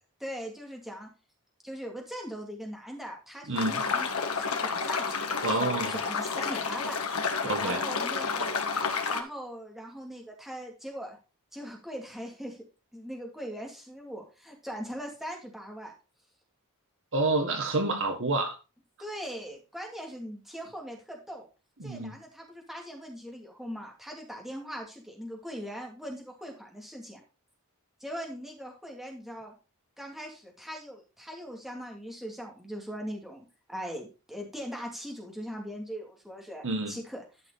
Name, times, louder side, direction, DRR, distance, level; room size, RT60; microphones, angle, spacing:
voice 1, 0.2-1.1 1.6-7.0 7.6-8.6 9.1-11.2 11.5-12.6 12.9-15.9 19.0-21.5 21.8-27.2 28.0-29.5 30.0-37.2, equal, ahead, 0 dB, 2.7 m, -40 dB
voice 2, 3.5-3.8 5.4-6.0 7.4-7.8 17.1-18.6 21.8-22.2 36.6-37.0, right 2 dB, 60° right, 6 dB, 1.6 m, -28 dB
sound 1, 3.6-9.2, left 5 dB, 70° left, 1.6 m, -30 dB
12.5 x 5.8 x 4.1 m, 0.31 s
head